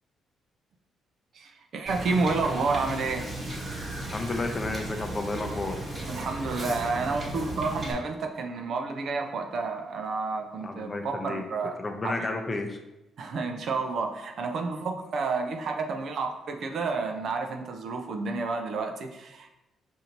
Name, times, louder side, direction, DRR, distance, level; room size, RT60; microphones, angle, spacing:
voice 1, 1.3-3.3 6.1-11.8 12.0-12.3 13.2-19.5, right 4 dB, 60° right, 4 dB, 0.5 m, -30 dB
Wind / Boat Water vehicle, 1.9-7.9, right 1 dB, 30° right, 1.4 m, -36 dB
voice 2, 4.1-5.8 10.6-11.4 11.8-12.8, left 2 dB, 30° left, 4 dB, 0.6 m, -32 dB
5.0 x 2.7 x 2.9 m, 0.98 s
cardioid pair, 90°, 0 cm